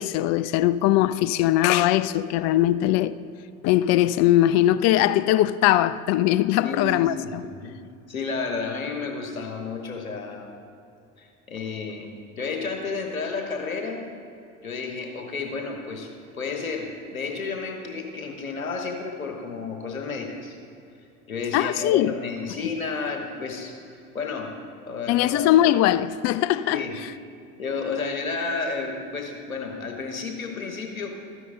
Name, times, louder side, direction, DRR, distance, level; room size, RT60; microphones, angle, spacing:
voice 1, 0.0-3.1 3.6-7.4 21.5-22.1 25.1-26.8, left 13 dB, 40° left, 0.4 m, -20 dB
voice 2, 6.6-7.7 8.1-10.5 11.2-14.0 14.6-20.6 21.3-23.8 24.1-24.6 24.9-25.5 26.7-27.0 27.6-31.1, left 4 dB, 90° left, 1.2 m, -31 dB
13.0 x 9.3 x 3.8 m
figure-of-eight pair, 70°, 41 cm